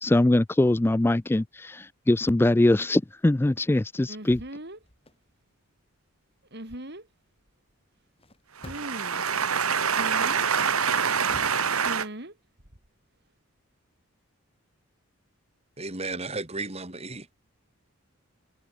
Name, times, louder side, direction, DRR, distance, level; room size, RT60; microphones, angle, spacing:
voice 1, 0.0-4.4, left 1 dB, 10° left, 0.3 m, -22 dB
sound 1, 4.1-4.8 6.5-7.0 8.7-9.2 9.9-10.4 11.8-12.3 12.6-12.9, right 1 dB, 50° right, 4.3 m, -39 dB
sound 2, 4.8-5.2 8.1-9.1 10.6-11.7, left 1 dB, 25° left, 7.8 m, -48 dB
voice 2, 8.5-12.1, right 6 dB, 85° right, 2.2 m, -25 dB
voice 3, 15.8-17.3, right 3 dB, 30° right, 3.1 m, -34 dB
head